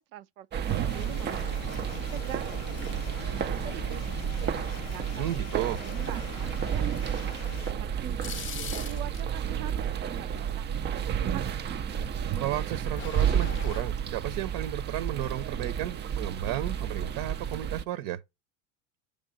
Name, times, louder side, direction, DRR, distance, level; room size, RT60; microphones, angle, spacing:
voice 1, 0.0-7.3 7.6-12.1, right 13 dB, 90° right, 0.6 m, -45 dB
sound 1, 0.5-17.8, right 8 dB, 25° right, 0.4 m, -31 dB
sound 2, 0.7-7.7, left 14 dB, 85° left, 0.6 m, -44 dB
voice 2, 5.1-5.8 12.3-18.2, right 13 dB, 55° right, 0.8 m, -33 dB
sound 3, 7.9-9.4 12.7-13.8, left 8 dB, 30° left, 0.6 m, -40 dB
5.2 x 3.6 x 5.1 m
supercardioid pair, 100°, 42 cm